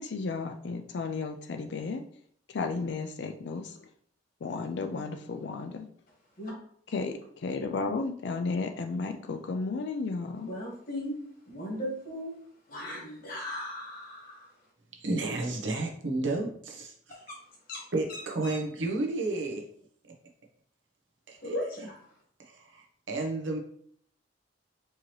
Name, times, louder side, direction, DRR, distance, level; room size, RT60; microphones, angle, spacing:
voice 1, 0.0-2.0 2.5-3.9 4.4-5.9 6.9-7.1 7.4-10.5, left 4 dB, 65° left, 0.4 m, -33 dB
voice 2, 10.5-11.2 11.5-12.3 12.7-14.5 17.1-17.4 17.7-17.8 18.1-18.6 21.4-22.0, left 1 dB, 50° left, 1.6 m, -37 dB
voice 3, 15.0-16.9 17.9-19.6 21.3-21.4 22.5-23.6, right 2 dB, 90° right, 0.9 m, -31 dB
4.6 x 3.0 x 3.1 m
head